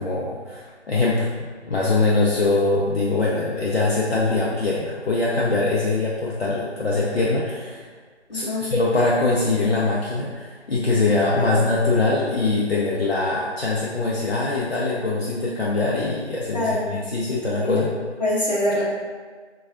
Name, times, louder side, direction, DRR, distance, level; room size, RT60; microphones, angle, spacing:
voice 1, 0.0-7.9 8.3-17.9, left 3 dB, 60° left, -6 dB, 0.5 m, -22 dB
voice 2, 8.3-8.6 11.3-11.6 16.5-16.9 17.6-17.8 18.2-18.8, left 1 dB, 35° left, -8 dB, 0.9 m, -24 dB
4.3 x 2.3 x 2.4 m, 1.5 s
figure-of-eight pair, 165°, 35 cm